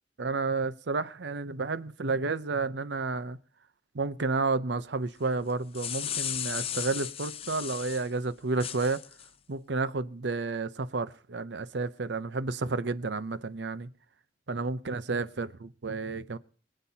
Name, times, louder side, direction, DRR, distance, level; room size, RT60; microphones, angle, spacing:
voice 1, 0.2-3.4 3.9-9.0 9.5-13.9 14.5-16.4, right 3 dB, 80° right, 0.7 m, -31 dB
sound 1, 5.5-8.1 8.6-9.3, left 10 dB, 35° left, 0.5 m, -35 dB
24.5 x 8.9 x 2.8 m
head